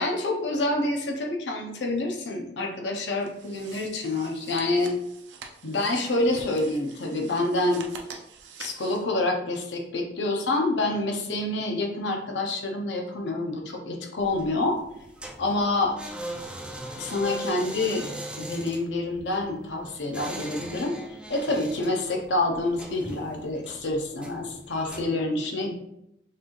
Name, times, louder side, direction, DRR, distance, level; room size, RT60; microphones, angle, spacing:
voice 1, 0.0-4.9 5.6-7.9 8.6-14.8 15.4-16.0 17.0-18.1 18.4-21.0 21.3-25.7, left 2 dB, 80° left, 2 dB, 0.7 m, -27 dB
sound 1, 3.2-9.0, right 5 dB, 85° right, 0.6 m, -45 dB
sound 2, 14.2-25.1, right 1 dB, 5° right, 0.4 m, -40 dB
5.8 x 3.1 x 2.5 m, 0.81 s
head